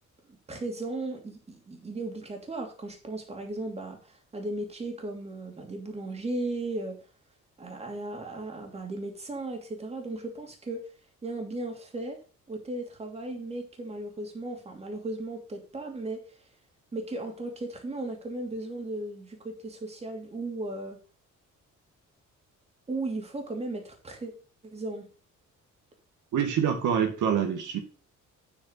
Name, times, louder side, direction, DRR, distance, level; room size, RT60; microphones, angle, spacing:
voice 1, 0.5-7.0 7.6-10.8 11.2-12.2 12.5-16.4 16.9-21.0 22.9-24.3 24.6-25.0, right 2 dB, 20° right, 2 dB, 2.9 m, -36 dB
voice 2, 26.3-27.8, right 8 dB, 70° right, 4 dB, 2.2 m, -26 dB
9.1 x 8.4 x 4.1 m, 0.35 s
cardioid pair, 165°, 31 cm